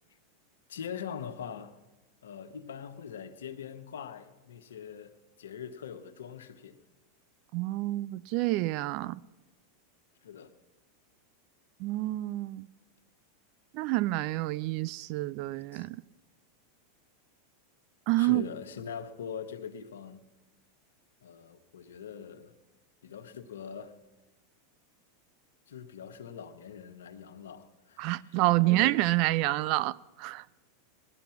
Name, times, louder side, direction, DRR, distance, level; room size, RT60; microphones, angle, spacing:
voice 1, 0.7-1.7 2.2-6.8 10.2-10.5 15.7-15.9 18.2-20.2 21.2-22.5 23.0-24.0 25.7-29.1, left 7 dB, 80° left, 1.1 m, -43 dB
voice 2, 7.5-9.2 11.8-12.7 13.7-16.0 18.1-18.4 28.0-30.4, right 18 dB, 55° right, 0.4 m, -28 dB
18.0 x 12.0 x 5.8 m
hypercardioid pair, 105°, 0 cm